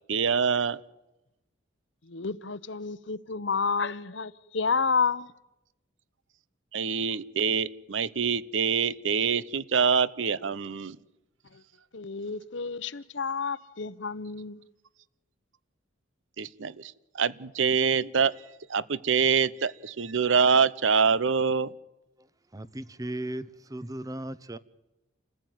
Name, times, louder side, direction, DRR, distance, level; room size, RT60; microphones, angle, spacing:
voice 1, 0.1-0.8 6.7-11.0 16.4-18.3 18.7-21.7, right 6 dB, 70° right, 0.8 m, -25 dB
voice 2, 2.1-5.3 11.5-11.6 11.9-14.6, left 5 dB, 65° left, 0.9 m, -30 dB
voice 3, 22.5-23.5 23.7-24.6, right 1 dB, 20° right, 0.8 m, -36 dB
28.5 x 15.5 x 9.2 m
head